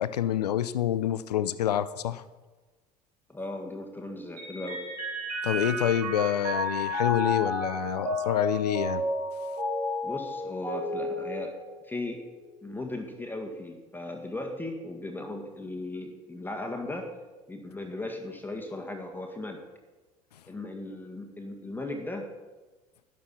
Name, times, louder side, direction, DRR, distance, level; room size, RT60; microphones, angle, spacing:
voice 1, 0.0-2.2 5.4-9.0, left 11 dB, 75° left, 15 dB, 0.6 m, -27 dB
voice 2, 3.3-4.8 10.0-11.6 11.8-12.2 12.6-17.1 17.5-19.6 20.5-22.3, left 2 dB, 10° left, 3 dB, 1.6 m, -37 dB
Mallet percussion, 4.4-12.1, left 1 dB, 75° right, 2.4 m, -32 dB
12.0 x 11.0 x 4.3 m, 1.2 s
figure-of-eight pair, 65°, 20 cm